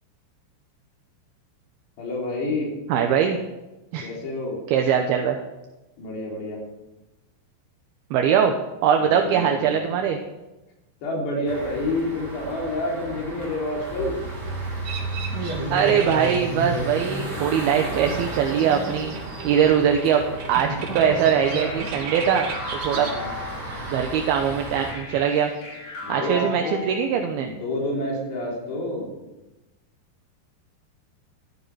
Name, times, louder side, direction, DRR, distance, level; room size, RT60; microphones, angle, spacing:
voice 1, 2.0-2.7 4.0-4.6 6.0-6.6 9.0-9.9 11.0-14.2 22.9-23.3 26.0-27.1 27.4-29.1, left 1 dB, 75° left, -2 dB, 5.5 m, -29 dB
voice 2, 2.9-3.4 3.9-4.1 4.7-5.4 8.1-8.6 8.8-10.2 15.7-19.2 19.4-20.2 20.5-22.5 22.8-23.1 23.9-25.5 26.1-27.5, right 8 dB, 75° right, 4 dB, 2.5 m, -21 dB
sound 1, 11.5-24.9, right 1 dB, 25° right, 3.1 m, -32 dB
sound 2, 14.8-26.1, right 5 dB, 55° right, 1.7 m, -39 dB
sound 3, 21.4-23.9 24.9-27.4, left 3 dB, 45° left, 4.2 m, -38 dB
13.5 x 12.5 x 4.8 m, 1.0 s
omnidirectional pair, 5.0 m